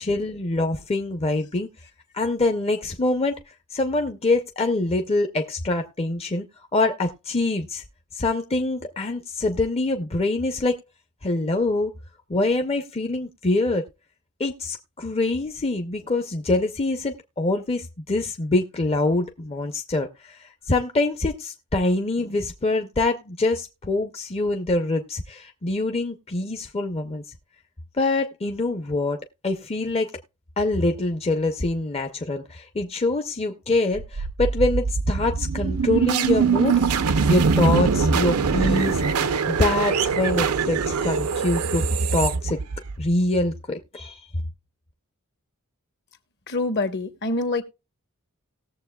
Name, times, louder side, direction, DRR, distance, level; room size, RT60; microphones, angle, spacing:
voice 1, 0.0-1.7 2.1-3.4 3.7-6.5 6.7-7.8 8.1-10.8 11.2-11.9 12.3-13.9 14.4-27.2 28.0-30.1 30.6-36.7 37.3-39.0 39.5-41.8 42.1-42.6 43.0-44.3, left 2 dB, 25° left, 0.6 m, -25 dB
sound 1, 33.9-43.1, right 5 dB, 80° right, 0.6 m, -22 dB
voice 2, 46.5-47.6, left 2 dB, 55° left, 1.1 m, -25 dB
18.5 x 7.1 x 2.3 m
head